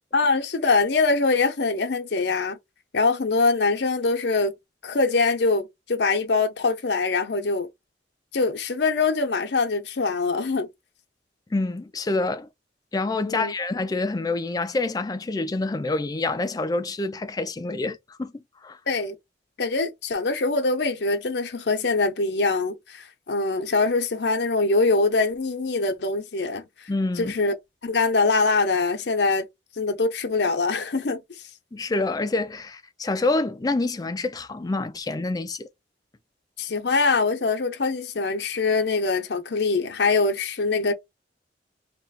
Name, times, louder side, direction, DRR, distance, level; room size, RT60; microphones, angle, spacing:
voice 1, 0.1-2.6 2.9-4.5 4.8-7.7 8.3-10.7 13.2-13.5 18.9-19.2 19.6-26.6 27.2-27.5 27.8-29.5 29.8-31.2 36.6-40.9, left 3 dB, 65° left, 0.7 m, -23 dB
voice 2, 11.5-12.5 12.9-18.3 18.6-18.8 26.9-27.3 31.7-35.7, left 2 dB, 20° left, 0.4 m, -27 dB
2.9 x 2.4 x 4.1 m
head